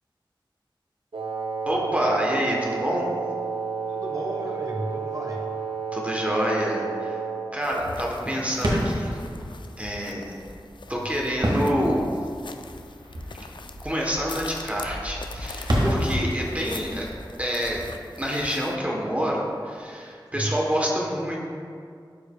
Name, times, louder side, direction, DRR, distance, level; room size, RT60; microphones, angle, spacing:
Wind instrument woodwind instrument, 1.1-7.6, right 5 dB, 90° right, 0.6 m, -31 dB
voice 1, 1.7-3.1 5.9-7.2 7.5-9.2 9.8-10.2 10.9-12.1 13.8-17.1 17.4-17.8 18.2-21.4, equal, 15° right, -3 dB, 0.9 m, -27 dB
voice 2, 3.9-5.5 10.9-11.1 20.3-20.5, right 1 dB, 45° right, -2 dB, 0.9 m, -33 dB
sound 1, 7.6-18.8, left 3 dB, 65° left, 0.4 m, -42 dB
sound 2, 8.5-19.1, equal, 60° right, 1.2 m, -31 dB
11.5 x 4.8 x 2.2 m, 2.2 s
wide cardioid pair, 65°, 9 cm